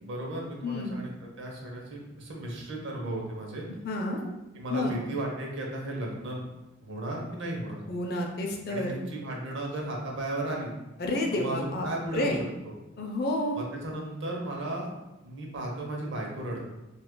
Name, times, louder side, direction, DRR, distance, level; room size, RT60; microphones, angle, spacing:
voice 1, 0.0-3.6 4.5-6.4 6.8-7.8 8.7-10.7 11.3-12.7 13.5-14.9 15.2-16.7, right 1 dB, 60° right, -1 dB, 0.7 m, -35 dB
voice 2, 0.6-0.9 3.8-4.2 4.7-5.0 7.9-9.0 11.0-11.9 12.1-12.4 13.0-13.6, left 1 dB, 50° left, 1 dB, 0.5 m, -30 dB
2.7 x 2.4 x 3.6 m, 1.0 s
head